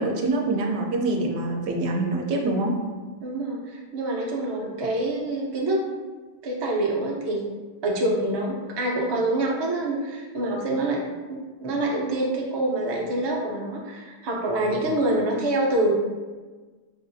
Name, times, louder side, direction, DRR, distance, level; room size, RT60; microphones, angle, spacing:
voice 1, 0.0-2.8, right 2 dB, 85° right, 1 dB, 0.8 m, -25 dB
voice 2, 3.2-5.9 6.4-7.4 7.8-11.0 11.3-15.9, right 1 dB, 35° right, -2 dB, 0.4 m, -26 dB
4.3 x 2.4 x 2.6 m, 1.4 s
omnidirectional pair, 1.1 m